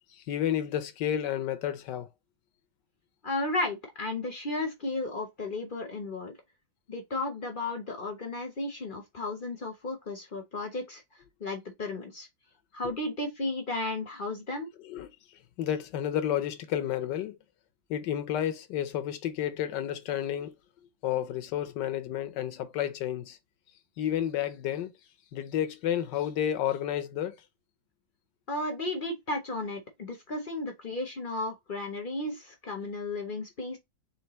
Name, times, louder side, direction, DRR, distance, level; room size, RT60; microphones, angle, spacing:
voice 1, 0.3-2.1 14.9-15.1 15.6-17.3 17.9-20.5 21.0-23.4 24.0-24.9 25.3-27.3, left 10 dB, 80° left, 1.3 m, -31 dB
voice 2, 3.2-6.4 6.9-11.0 11.4-12.3 12.7-14.7 28.5-33.8, left 2 dB, 40° left, 0.7 m, -34 dB
4.5 x 3.3 x 3.0 m
omnidirectional pair, 1.9 m